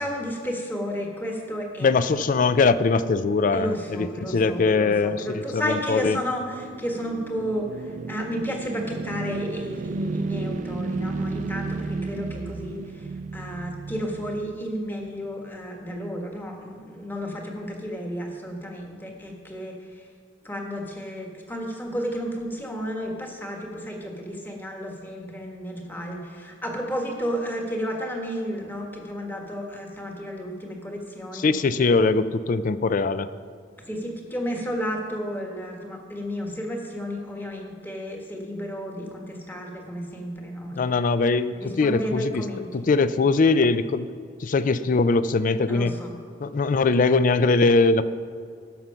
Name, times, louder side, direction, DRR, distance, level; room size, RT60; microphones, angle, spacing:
voice 1, 0.0-1.9 3.5-13.1 13.3-19.8 20.4-31.5 33.9-41.0 41.5-42.9 45.7-46.1, equal, 10° left, 1 dB, 1.3 m, -32 dB
voice 2, 1.8-6.2 31.3-33.3 40.7-42.4 42.7-44.1 44.4-45.9 46.4-48.0, left 3 dB, 45° left, 14 dB, 0.4 m, -21 dB
sound 1, 5.9-15.1, right 3 dB, 40° right, 0.3 m, -33 dB
13.0 x 6.0 x 5.6 m, 2.1 s
head